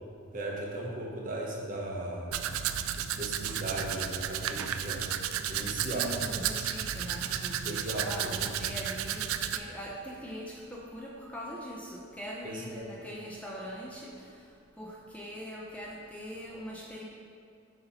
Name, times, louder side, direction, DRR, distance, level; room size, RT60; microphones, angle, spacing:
voice 1, 0.3-2.4 3.0-5.0 5.5-6.1 7.6-8.7 12.4-12.8, right 1 dB, 40° right, -2 dB, 0.9 m, -37 dB
Domestic sounds home sounds, 2.3-9.6, right 9 dB, 80° right, 0.3 m, -33 dB
voice 2, 5.9-14.3 14.8-17.0, equal, 5° left, -4 dB, 0.4 m, -42 dB
7.7 x 2.9 x 5.4 m, 2.4 s
head